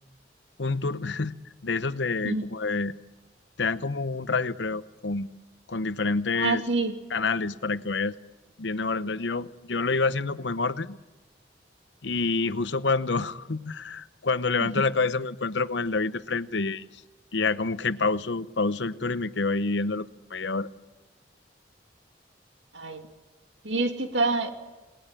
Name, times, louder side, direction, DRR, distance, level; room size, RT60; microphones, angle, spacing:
voice 1, 0.6-1.4 1.6-3.0 3.6-5.3 5.7-6.6 7.1-8.2 8.6-11.0 12.0-16.9 17.3-20.7, left 3 dB, 80° left, 14 dB, 0.9 m, -27 dB
voice 2, 6.3-7.0 14.6-14.8 22.7-23.1 23.6-24.5, right 3 dB, 90° right, 5 dB, 2.6 m, -27 dB
29.5 x 19.0 x 9.0 m, 1.2 s
head